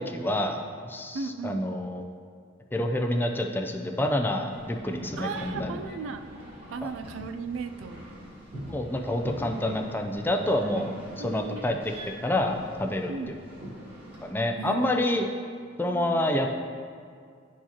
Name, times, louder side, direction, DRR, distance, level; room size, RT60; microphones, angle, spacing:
voice 1, 0.0-2.0 2.7-5.7 8.7-11.8 12.2-13.4 14.2-15.3 15.8-16.5, left 1 dB, 10° left, 3 dB, 0.4 m, -28 dB
voice 2, 1.1-1.6 5.2-6.3 6.7-8.1 11.2-11.8 13.1-13.3 14.6-14.9 15.8-16.3, right 4 dB, 80° right, 8 dB, 0.4 m, -36 dB
sound 1, 4.5-14.3, equal, 30° right, 1.5 m, -42 dB
10.5 x 4.6 x 2.9 m, 2.1 s
head